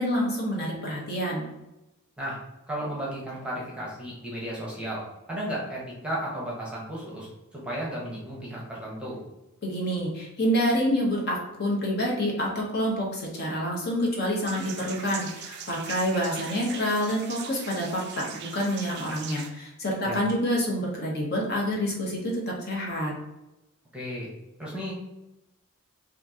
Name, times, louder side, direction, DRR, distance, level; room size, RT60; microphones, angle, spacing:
voice 1, 0.0-1.5 9.6-23.1, equal, 50° left, -2 dB, 0.8 m, -27 dB
voice 2, 2.7-5.0 5.3-9.2 20.1-20.2 23.9-24.3 24.6-24.9, equal, 5° right, -5 dB, 0.8 m, -34 dB
sound 1, 14.4-19.5, right 7 dB, 50° right, 0.4 m, -41 dB
2.9 x 2.5 x 3.5 m, 0.97 s
head